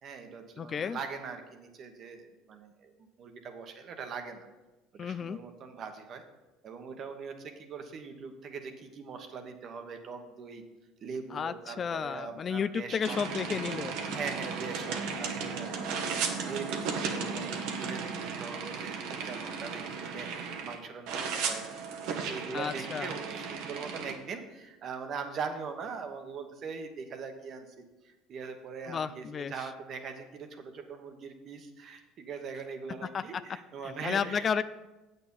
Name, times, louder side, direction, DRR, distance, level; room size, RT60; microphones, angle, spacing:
voice 1, 0.0-2.9 3.2-4.5 5.0-6.2 6.6-10.6 11.0-13.2 14.0-16.8 17.1-21.6 22.0-34.5, right 5 dB, 50° right, 6 dB, 1.2 m, -41 dB
voice 2, 0.6-1.0 5.0-5.4 11.3-14.0 22.5-23.2 28.9-29.7 33.0-33.6 33.8-34.6, left 7 dB, 40° left, 13 dB, 0.4 m, -33 dB
sound 1, 13.0-20.8 21.1-24.1, right 5 dB, 70° right, 1.1 m, -35 dB
8.1 x 6.8 x 5.4 m, 1.1 s
hypercardioid pair, 80°, 0 cm